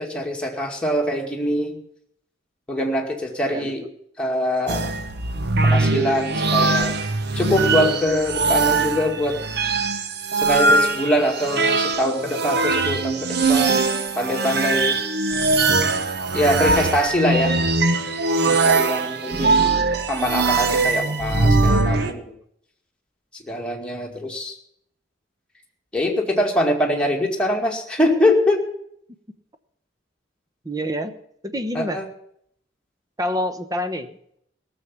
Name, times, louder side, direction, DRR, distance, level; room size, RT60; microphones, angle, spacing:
voice 1, 0.0-1.8 2.7-3.8 4.2-4.8 5.6-7.0 7.3-9.4 10.4-13.8 14.1-15.0 16.3-17.6 18.4-19.8 20.1-22.3 23.4-24.6 25.9-28.7 31.7-32.0, left 1 dB, 5° left, -1 dB, 2.2 m, -23 dB
sound 1, 4.7-22.1, right 3 dB, 55° right, 1.1 m, -21 dB
voice 2, 19.4-19.9 30.6-31.1 31.4-32.0 33.2-34.4, equal, 20° right, 9 dB, 1.0 m, -28 dB
18.0 x 7.3 x 8.3 m, 0.70 s
head